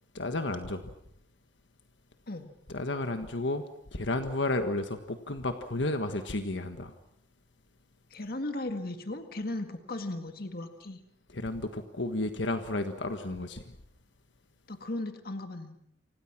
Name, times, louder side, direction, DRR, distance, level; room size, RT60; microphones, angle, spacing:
voice 1, 0.1-0.8 2.7-3.6 3.9-6.9 11.3-13.6, left 2 dB, 75° left, 7 dB, 1.6 m, -32 dB
voice 2, 8.1-11.0 14.7-15.8, left 2 dB, 55° left, 6 dB, 2.0 m, -36 dB
28.5 x 26.0 x 6.1 m, 0.76 s
head